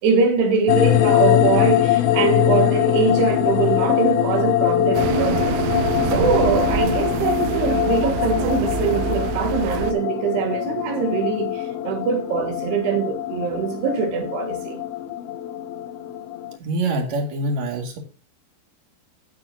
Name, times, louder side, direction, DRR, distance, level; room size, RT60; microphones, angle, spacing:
voice 1, 0.0-5.6 6.0-14.8, right 5 dB, 70° right, 3.6 m, -23 dB
sound 1, 0.7-16.6, left 12 dB, 90° left, 2.1 m, -22 dB
sound 2, 4.9-9.9, right 9 dB, 85° right, 3.0 m, -26 dB
voice 2, 16.6-18.0, right 2 dB, 50° right, 2.6 m, -25 dB
12.5 x 8.5 x 2.7 m
omnidirectional pair, 5.1 m